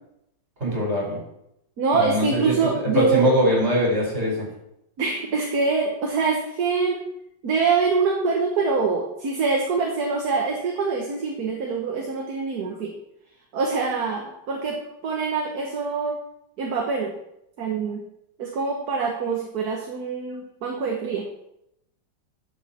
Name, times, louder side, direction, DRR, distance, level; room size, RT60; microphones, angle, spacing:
voice 1, 0.6-1.2 1.9-4.5, equal, 35° right, -3 dB, 4.7 m, -22 dB
voice 2, 1.8-3.3 5.0-7.0 7.4-12.9 13.5-14.8 15.0-16.2 16.6-17.1 17.6-18.0 18.4-21.3, right 4 dB, 60° right, 0 dB, 1.6 m, -24 dB
11.5 x 7.3 x 4.3 m, 0.81 s
omnidirectional pair, 2.0 m